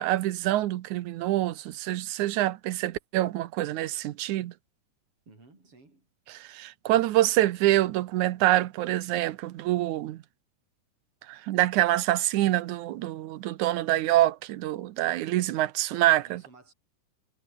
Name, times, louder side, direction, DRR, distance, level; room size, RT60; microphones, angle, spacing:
voice 1, 0.0-4.5 6.3-10.2 11.3-16.4, right 15 dB, 80° right, 2.3 m, -26 dB
voice 2, 5.3-6.1 16.2-16.7, right 3 dB, 45° right, 8.6 m, -55 dB
omnidirectional pair, 3.5 m